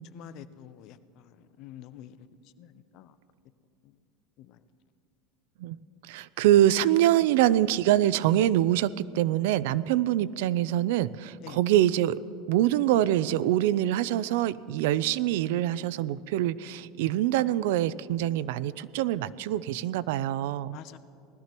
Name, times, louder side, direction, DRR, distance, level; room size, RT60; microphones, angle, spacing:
voice 1, 0.1-1.0 1.6-2.1 2.6-3.1 4.5-4.6 11.4-11.6 20.7-21.0, left 12 dB, 50° left, 0.6 m, -46 dB
voice 2, 6.1-12.2 12.5-20.8, right 13 dB, 80° right, 0.4 m, -25 dB
19.5 x 13.0 x 3.0 m
supercardioid pair, 145°, 0 cm